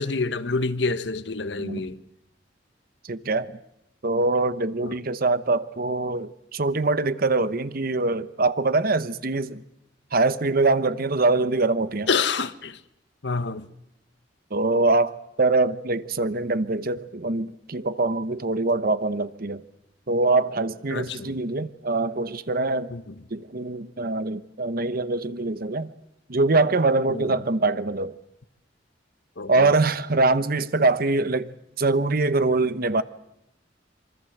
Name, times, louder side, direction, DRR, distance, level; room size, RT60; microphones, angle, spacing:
voice 1, 0.0-2.0 4.8-4.9 12.1-12.8 13.2-13.7 20.9-21.3 22.9-23.1 27.1-27.3 29.4-29.7, left 4 dB, 65° left, 1.1 m, -27 dB
voice 2, 3.0-3.5 4.0-9.6 10.1-12.1 14.5-19.6 20.1-22.9 23.3-25.9 26.3-28.2 29.5-31.5 31.8-33.0, right 3 dB, 55° right, 1.0 m, -23 dB
26.0 x 24.5 x 8.0 m
head